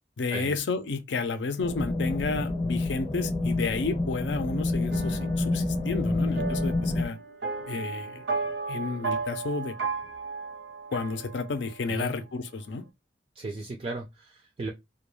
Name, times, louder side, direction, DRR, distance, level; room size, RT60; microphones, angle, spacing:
voice 1, 0.2-7.2 7.7-8.2 8.7-9.7 10.9-12.8, left 4 dB, 80° left, 0.5 m, -31 dB
sound 1, 1.6-7.1, left 2 dB, 25° left, 0.7 m, -28 dB
sound 2, 4.9-11.9, right 4 dB, 80° right, 0.7 m, -35 dB
voice 2, 13.4-14.7, right 3 dB, 35° right, 0.4 m, -36 dB
2.2 x 2.2 x 3.0 m
head